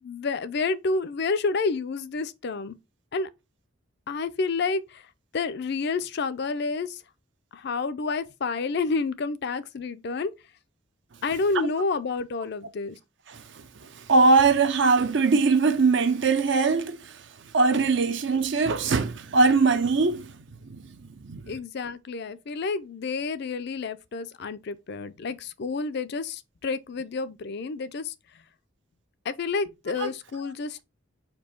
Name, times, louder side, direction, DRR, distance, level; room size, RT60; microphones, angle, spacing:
voice 1, 0.0-2.8 3.1-3.3 4.1-5.0 5.3-7.0 7.5-10.3 11.2-13.0 21.5-28.1 29.3-30.8, left 4 dB, 55° left, 0.4 m, -29 dB
voice 2, 13.3-17.3 17.5-20.4 20.6-21.6 30.0-30.1, right 4 dB, 60° right, 0.6 m, -22 dB
4.5 x 2.7 x 4.3 m
head